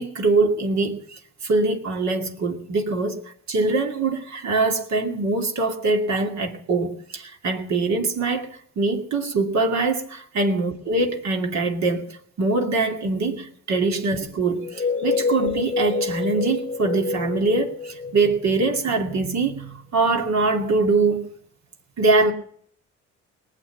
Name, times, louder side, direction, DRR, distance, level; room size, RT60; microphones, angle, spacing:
voice 1, 0.0-21.3 22.0-22.3, right 3 dB, 65° right, 2.5 m, -23 dB
sound 1, 14.6-19.2, left 5 dB, 25° left, 1.0 m, -27 dB
19.0 x 7.8 x 9.3 m
cardioid pair, 75°, 30 cm